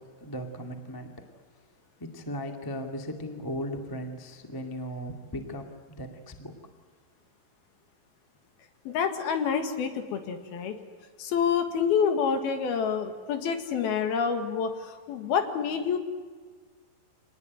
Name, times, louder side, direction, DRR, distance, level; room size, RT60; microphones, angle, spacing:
voice 1, 0.2-1.1 2.0-6.5, equal, 15° left, 4 dB, 0.6 m, -37 dB
voice 2, 8.9-10.8 11.2-16.0, left 6 dB, 65° left, 7 dB, 3.5 m, -27 dB
26.5 x 19.5 x 9.5 m, 1.5 s
omnidirectional pair, 4.9 m